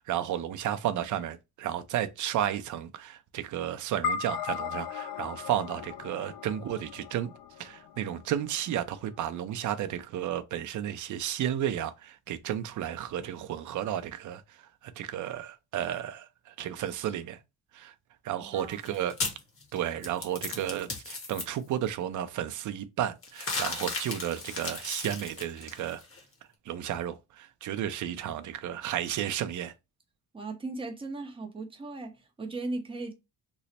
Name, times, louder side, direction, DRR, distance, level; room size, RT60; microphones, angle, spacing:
voice 1, 0.0-7.3 7.6-17.4 17.7-17.9 18.2-19.1 19.7-26.0 26.7-29.7, right 11 dB, 50° right, 0.5 m, -33 dB
sound 1, 4.0-8.6, left 7 dB, 65° left, 0.6 m, -37 dB
voice 2, 18.4-19.0 30.3-33.1, right 2 dB, 15° right, 0.7 m, -37 dB
sound 2, 18.6-21.4 23.2-26.2, left 3 dB, 35° left, 1.2 m, -35 dB
3.1 x 2.0 x 4.0 m
cardioid pair, 135°, 39 cm